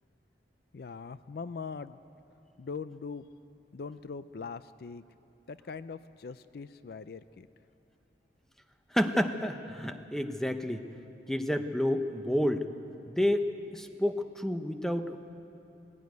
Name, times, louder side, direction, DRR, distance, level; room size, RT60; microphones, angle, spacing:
voice 1, 0.7-2.0 2.6-3.3 3.7-5.0 5.5-7.5, left 5 dB, 55° left, 14 dB, 0.4 m, -41 dB
voice 2, 8.9-10.9 11.3-12.7 13.1-15.2, left 1 dB, ahead, 7 dB, 0.7 m, -30 dB
18.5 x 16.5 x 9.4 m, 3.0 s
head